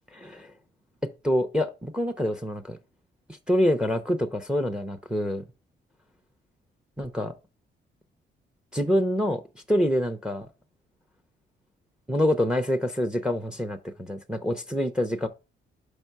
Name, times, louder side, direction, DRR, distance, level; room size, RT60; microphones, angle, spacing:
voice 1, 0.1-0.5 1.0-2.8 3.3-5.4 7.0-7.3 8.7-9.4 9.7-10.5 12.1-15.3, equal, 5° right, 0.8 m, -26 dB
5.4 x 5.2 x 4.6 m
cardioid pair, 90°, 20 cm